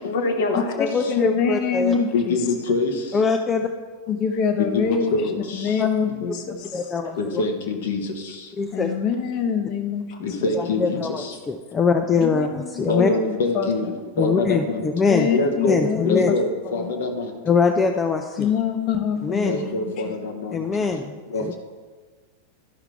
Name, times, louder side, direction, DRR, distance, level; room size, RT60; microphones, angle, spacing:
voice 1, 0.0-0.6 2.1-2.9 4.6-5.2 7.2-8.0 10.2-11.0 12.9-13.9 14.2-14.8 15.3-15.8 16.0-17.3 19.4-20.1 20.4-20.5 21.3-21.6, left 3 dB, 60° left, 4 dB, 1.1 m, -24 dB
voice 2, 0.5-2.0 3.1-3.7 5.8-5.9 6.7-7.4 8.5-9.0 10.5-13.1 14.2-15.3 15.7-16.3 17.4-18.5 19.2-19.7 20.5-21.5, left 5 dB, 20° left, 6 dB, 0.5 m, -23 dB
voice 3, 1.1-2.3 4.1-5.2 5.5-6.6 8.7-10.3 12.2-12.5 13.0-13.7 15.1-16.2 16.6-16.9 18.4-19.9, left 6 dB, 40° left, 6 dB, 1.0 m, -25 dB
12.0 x 5.8 x 3.4 m, 1.4 s
figure-of-eight pair, 90°, 0 cm